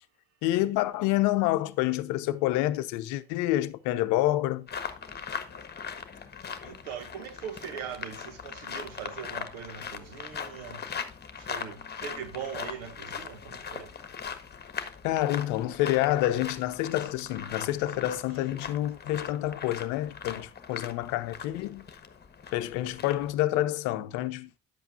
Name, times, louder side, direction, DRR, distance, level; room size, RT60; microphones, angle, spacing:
voice 1, 0.4-4.7 15.0-21.9 22.5-24.6, left 15 dB, 70° left, 0.7 m, -28 dB
sound 1, 4.7-23.3, left 6 dB, 30° left, 1.3 m, -40 dB
voice 2, 6.6-10.8 11.4-13.9, right 7 dB, 80° right, 1.7 m, -40 dB
10.0 x 8.0 x 2.5 m
hypercardioid pair, 55°, 31 cm